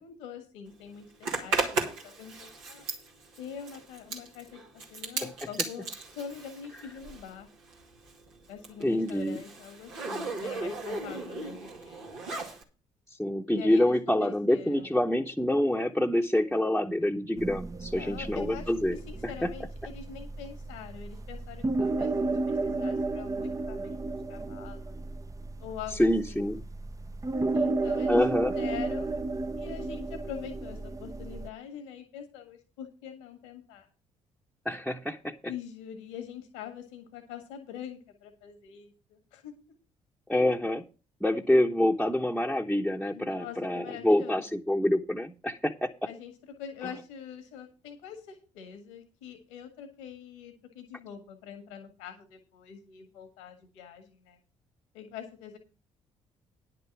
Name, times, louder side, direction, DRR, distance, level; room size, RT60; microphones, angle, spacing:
voice 1, 0.0-2.8 3.4-4.6 4.9-7.5 8.5-12.0 13.5-14.9 17.8-24.0 24.3-25.0 25.6-26.5 27.5-28.2 28.5-29.1 29.6-33.9 35.5-39.5 43.1-44.5 46.1-46.3 46.6-54.4 54.9-55.6, left 8 dB, 80° left, 6 dB, 1.7 m, -44 dB
Zipper (clothing), 1.2-7.4 7.7-12.6, right 3 dB, 85° right, 2.3 m, -36 dB
voice 2, 8.8-9.4 13.2-19.0 19.4-19.5 26.0-26.6 28.1-28.5 34.6-35.3 40.3-40.8 41.2-45.9, left 1 dB, ahead, -1 dB, 1.0 m, -26 dB
sound 1, 17.4-31.5, right 2 dB, 20° right, 0.7 m, -33 dB
10.5 x 6.8 x 6.1 m, 0.33 s
hypercardioid pair, 50°, 15 cm